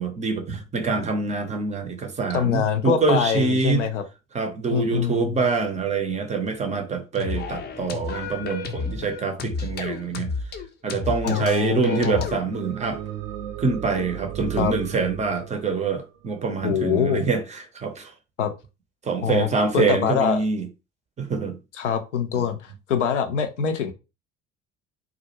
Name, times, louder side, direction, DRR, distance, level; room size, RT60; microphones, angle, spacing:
voice 1, 0.0-3.9 4.3-10.3 10.8-13.0 13.6-18.1 19.0-20.7 21.2-21.6 22.3-22.4, right 4 dB, 20° right, 0.5 m, -25 dB
voice 2, 2.3-4.0 4.7-5.3 11.2-12.3 14.6-14.7 16.6-17.3 18.4-18.5 19.2-19.5 19.7-20.4 21.8-23.9, left 7 dB, 80° left, 0.5 m, -24 dB
sound 1, 7.2-12.4, left 4 dB, 30° left, 0.5 m, -31 dB
sound 2, 12.5-16.9, right 12 dB, 65° right, 0.6 m, -36 dB
2.3 x 2.0 x 2.9 m
figure-of-eight pair, 60°, 36 cm